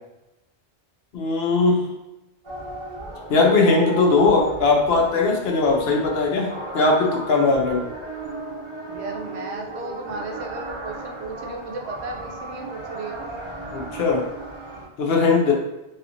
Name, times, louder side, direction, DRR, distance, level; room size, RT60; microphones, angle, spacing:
voice 1, 1.1-1.9 3.3-7.9 13.7-14.2 15.0-15.5, left 3 dB, 65° left, 1 dB, 0.8 m, -19 dB
sound 1, 2.4-14.9, right 2 dB, 35° right, 0.5 m, -35 dB
voice 2, 8.9-13.4, right 2 dB, 75° right, 3 dB, 0.8 m, -35 dB
3.3 x 2.8 x 2.5 m, 0.96 s
omnidirectional pair, 1.1 m